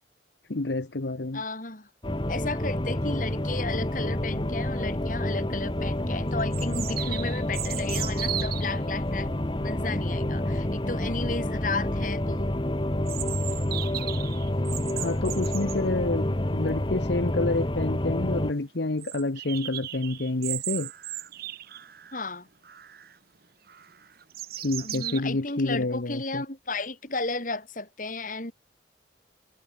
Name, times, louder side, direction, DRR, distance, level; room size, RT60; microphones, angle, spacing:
voice 1, 0.5-1.4 15.0-16.3 16.5-20.9 24.6-26.4, left 2 dB, 65° left, 1.0 m, -28 dB
voice 2, 1.3-1.9 2.3-9.3 9.6-12.6 22.1-22.5 24.8-28.5, left 3 dB, 45° left, 4.8 m, -34 dB
sound 1, 2.0-18.5, left 1 dB, 25° left, 1.2 m, -28 dB
sound 2, 5.6-5.7 6.5-8.7 13.1-15.8 17.4-17.5 17.8-17.9 18.2-18.3 19.0-22.2 22.6-23.1 23.7-25.2, right 14 dB, 55° right, 1.0 m, -36 dB
head